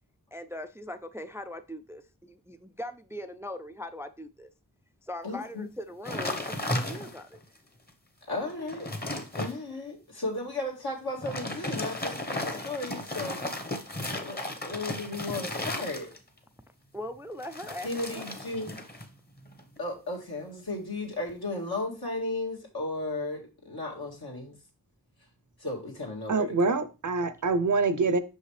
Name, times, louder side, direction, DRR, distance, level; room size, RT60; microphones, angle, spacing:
voice 1, 0.3-4.5 5.0-7.4 15.3-15.5 16.9-17.9 18.1-18.2, left 1 dB, 5° right, 0.3 m, -40 dB
voice 2, 5.2-5.7 8.3-8.9 9.3-13.4 14.2-16.1 17.8-18.8 19.8-24.6 25.6-26.6, left 2 dB, 80° left, 1.9 m, -35 dB
sound 1, 6.1-7.4 7.9-8.0 8.4-9.6 11.1-16.4 17.4-19.1 19.4-19.8, left 1 dB, 25° left, 0.9 m, -35 dB
voice 3, 26.3-28.2, right 3 dB, 55° right, 0.6 m, -25 dB
5.7 x 5.5 x 3.2 m
wide cardioid pair, 55°, 37 cm